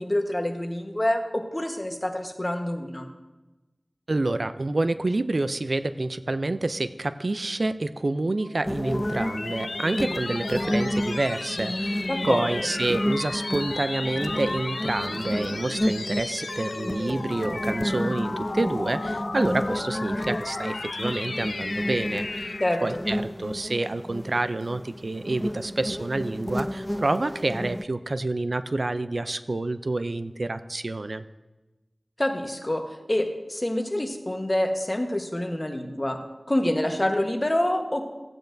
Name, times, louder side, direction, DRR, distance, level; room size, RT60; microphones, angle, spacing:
voice 1, 0.0-3.1 12.1-12.5 22.6-23.0 32.2-32.8 33.1-36.2 36.5-38.1, left 1 dB, 30° left, 3 dB, 1.2 m, -26 dB
voice 2, 4.1-31.2, right 2 dB, 65° right, 12 dB, 0.4 m, -28 dB
sound 1, 8.4-23.1, left 3 dB, 90° left, 0.4 m, -34 dB
sound 2, 8.6-27.8, equal, 10° left, 0.4 m, -31 dB
14.5 x 8.8 x 2.6 m, 1.1 s
wide cardioid pair, 50°, 0 cm